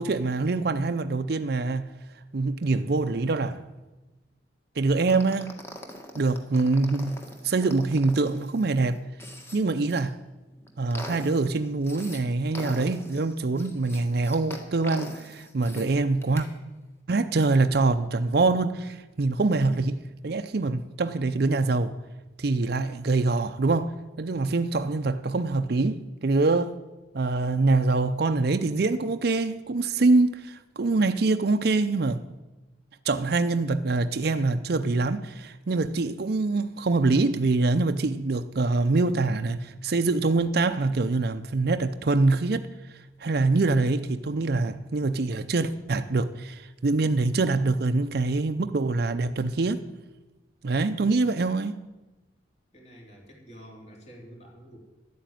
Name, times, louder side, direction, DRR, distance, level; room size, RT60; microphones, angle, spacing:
voice 1, 0.0-1.9 2.3-3.6 4.8-5.6 6.1-7.2 7.4-9.0 9.5-10.2 10.8-16.5 17.1-21.9 22.4-26.8 27.1-32.2 33.0-42.7 43.2-49.9 50.6-51.7, right 3 dB, 60° right, 0.5 m, -24 dB
sound 1, 5.1-10.0 10.5-12.2 12.5-15.9 16.2-16.5, left 1 dB, 15° left, 1.6 m, -42 dB
voice 2, 52.7-54.8, equal, 40° left, 3.5 m, -48 dB
12.0 x 9.2 x 9.1 m
head